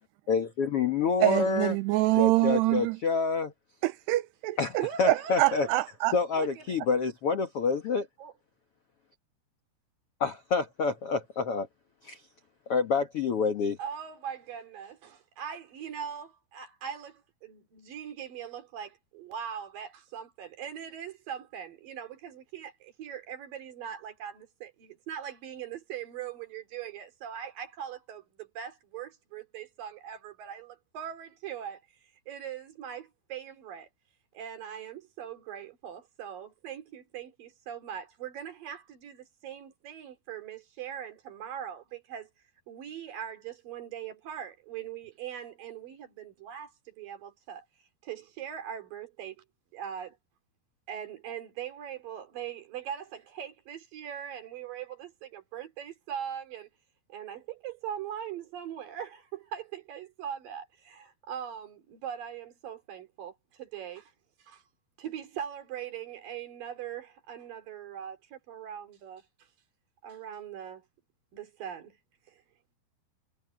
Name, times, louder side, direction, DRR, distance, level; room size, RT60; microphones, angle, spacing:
voice 1, 0.3-1.7 2.2-3.5 4.6-5.7 6.1-8.1 10.2-11.7 12.0-12.2 12.7-13.8, left 5 dB, 65° left, 1.4 m, -28 dB
voice 2, 1.2-3.0 3.8-4.6 5.0-6.1, right 17 dB, 85° right, 2.7 m, -25 dB
voice 3, 4.8-5.8 6.4-6.8 8.2-8.3 13.8-33.9 34.3-42.3 42.7-47.7 48.0-49.4 49.7-50.2 50.9-56.7 57.1-64.1 64.4-64.6 65.0-69.5 70.0-70.8 71.3-72.0 72.3-72.4, right 9 dB, 55° right, 4.1 m, -41 dB
omnidirectional pair, 4.9 m